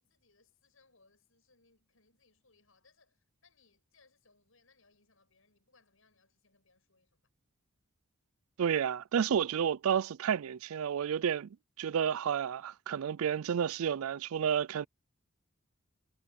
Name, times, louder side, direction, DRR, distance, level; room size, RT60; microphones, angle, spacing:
voice 1, 0.0-7.2, left 4 dB, 70° left, 7.6 m, -69 dB
voice 2, 8.6-11.5 11.8-14.9, right 8 dB, 80° right, 0.4 m, -31 dB
head